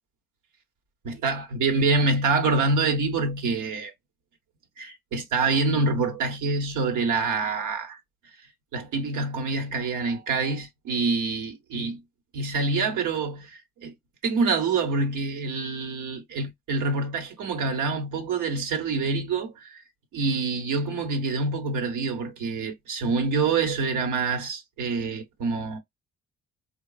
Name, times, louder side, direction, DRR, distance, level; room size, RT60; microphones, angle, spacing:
voice 1, 1.0-3.9 4.8-8.0 8.7-12.0 12.3-13.9 14.2-19.8 20.1-25.8, right 3 dB, 85° right, 1.2 m, -26 dB
3.9 x 2.3 x 2.3 m
cardioid pair, 90°, 30 cm